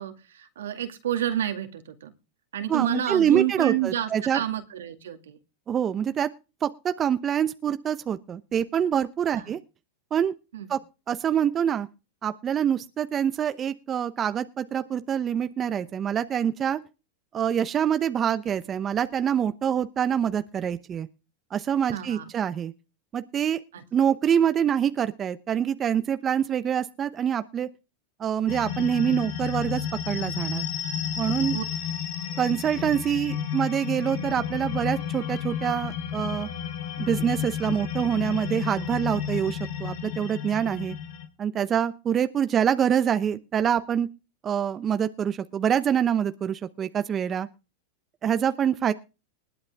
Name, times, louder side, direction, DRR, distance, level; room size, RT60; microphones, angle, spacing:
voice 1, 0.0-2.1 2.5-5.4 9.3-9.5 10.5-10.7 21.9-22.3 23.7-23.8 31.5-31.6, right 11 dB, 85° right, 2.2 m, -29 dB
voice 2, 2.7-4.4 5.7-6.3 6.6-9.6 10.1-10.3 10.7-10.8 11.1-11.9 12.2-16.8 17.3-21.1 21.5-22.7 23.1-23.6 23.9-27.7 28.2-30.7 31.2-31.6 32.4-36.5 37.0-41.0 41.4-44.1 44.4-47.5 48.2-48.9, right 8 dB, 30° right, 0.9 m, -25 dB
sound 1, 28.5-41.3, left 8 dB, 65° left, 3.6 m, -32 dB
20.0 x 8.7 x 3.5 m
hypercardioid pair, 110°, 0 cm